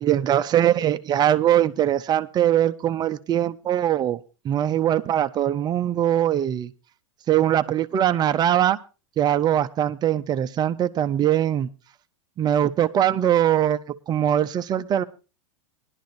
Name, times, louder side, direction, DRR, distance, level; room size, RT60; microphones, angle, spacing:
voice 1, 0.0-6.7 7.3-8.8 9.2-11.7 12.4-15.0, right 11 dB, 25° right, 10 dB, 0.5 m, -21 dB
19.0 x 11.5 x 2.6 m, 0.32 s
supercardioid pair, 130°, 16 cm